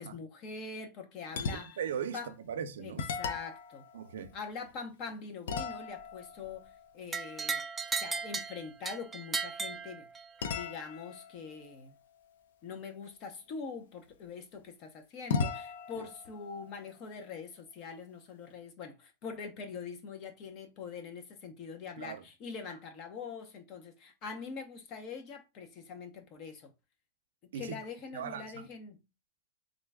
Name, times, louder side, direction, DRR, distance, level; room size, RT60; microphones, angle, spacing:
voice 1, 0.0-1.8 2.1-2.3 2.8-3.9 4.3-6.7 6.9-7.6 8.0-10.1 10.5-11.9 12.6-26.7 27.4-29.0, left 5 dB, 40° left, 0.8 m, -43 dB
sound 1, 1.3-2.0 2.4-2.5 2.9-4.9 5.5-8.1 10.4-13.1 15.3-17.9, left 5 dB, 80° left, 0.5 m, -40 dB
voice 2, 1.5-3.0 3.9-4.3 16.0-16.1 22.0-22.2 27.5-27.8 28.1-28.7, right 8 dB, 90° right, 0.5 m, -39 dB
sound 2, 7.1-10.5, right 5 dB, 15° right, 0.3 m, -36 dB
3.7 x 2.3 x 3.4 m
supercardioid pair, 145°, 0 cm